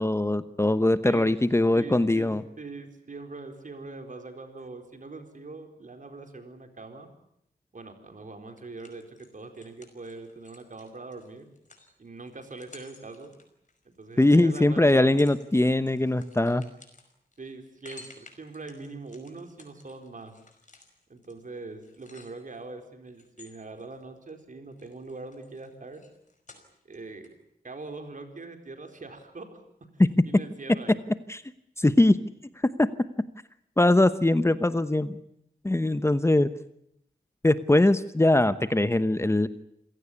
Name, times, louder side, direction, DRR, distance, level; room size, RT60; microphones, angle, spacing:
voice 1, 0.0-2.4 14.2-16.6 30.0-30.1 31.3-31.4 31.8-32.2 32.6-32.9 33.8-35.2 35.6-36.5 37.4-39.5, left 1 dB, 15° left, 13 dB, 0.9 m, -21 dB
voice 2, 1.0-1.4 1.7-7.1 7.7-11.5 12.0-13.3 13.8-15.2 17.4-20.3 21.1-26.0 26.9-27.3 27.6-29.6 30.3-31.0, right 3 dB, 55° right, 6 dB, 4.4 m, -42 dB
sound 1, 8.6-14.4 14.9-15.5 15.7-22.7 23.1-24.4 24.7-27.0 27.2-27.3, left 3 dB, 50° left, 5.4 m, -54 dB
27.5 x 17.0 x 9.8 m, 0.76 s
wide cardioid pair, 75°, 16 cm